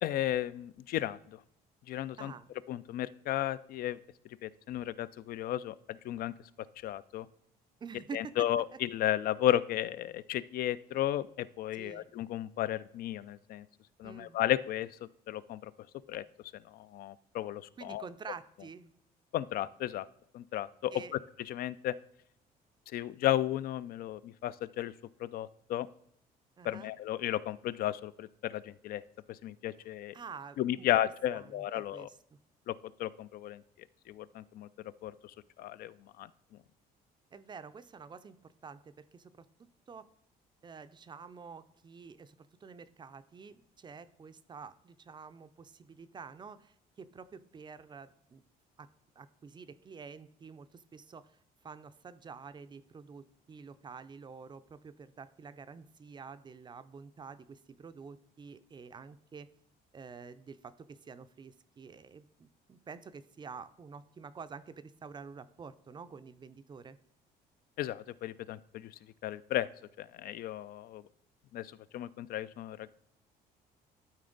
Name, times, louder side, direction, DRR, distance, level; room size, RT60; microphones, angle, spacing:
voice 1, 0.0-1.4 1.9-2.3 2.7-4.0 4.4-6.3 6.8-7.3 8.1-13.7 14.0-14.9 15.3-15.7 16.1-16.2 16.6-18.1 19.3-20.1 20.3-20.9 21.4-21.9 22.9-24.9 25.2-25.9 26.6-29.0 29.3-30.1 30.6-32.1 32.7-34.7 35.0-36.3 67.8-69.7 70.0-71.0 71.5-72.9, left 12 dB, 60° left, 17 dB, 0.4 m, -34 dB
voice 2, 2.2-2.5 7.8-8.3 11.8-12.1 14.0-14.4 17.8-18.9 20.9-21.2 26.6-26.9 30.1-32.4 37.3-39.5 39.9-40.1 40.6-42.4 42.6-48.4 48.8-48.9 49.2-51.4 51.6-59.5 59.9-67.0, right 5 dB, 25° right, 13 dB, 0.4 m, -48 dB
12.0 x 4.3 x 3.9 m, 0.72 s
cardioid pair, 110°, 17 cm